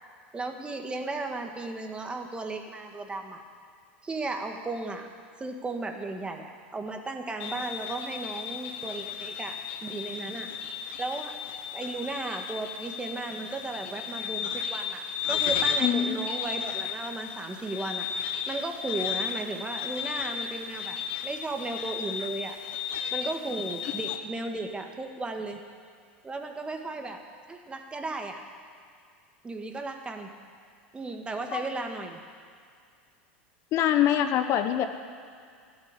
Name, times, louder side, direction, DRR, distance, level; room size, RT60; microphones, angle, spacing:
voice 1, 0.3-3.4 4.0-5.1 5.4-10.5 11.0-11.4 11.7-18.1 18.5-22.6 23.1-25.6 26.2-27.2 27.5-28.4 29.4-30.3 30.9-32.2, right 3 dB, 15° right, 4 dB, 1.6 m, -35 dB
sound 1, 7.4-24.2, left 7 dB, 65° left, 1.1 m, -34 dB
voice 2, 15.8-16.2 31.5-31.6 33.7-34.9, left 11 dB, 50° left, 8 dB, 0.9 m, -24 dB
13.5 x 8.2 x 10.0 m, 2.2 s
hypercardioid pair, 95°, 6 cm